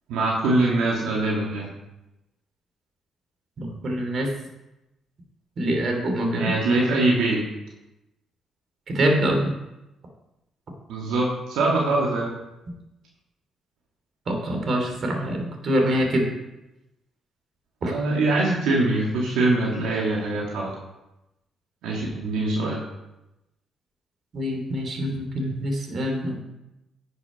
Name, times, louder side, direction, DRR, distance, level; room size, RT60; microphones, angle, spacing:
voice 1, 0.1-1.7 6.3-7.4 10.9-12.3 17.8-20.8 21.8-22.8, right 2 dB, 85° right, -3 dB, 2.1 m, -23 dB
voice 2, 3.6-4.3 5.6-6.5 8.9-9.5 14.3-16.3 17.8-17.9 24.3-26.4, equal, 50° right, 2 dB, 3.0 m, -25 dB
10.0 x 7.0 x 5.4 m, 0.94 s
supercardioid pair, 70°, 0 cm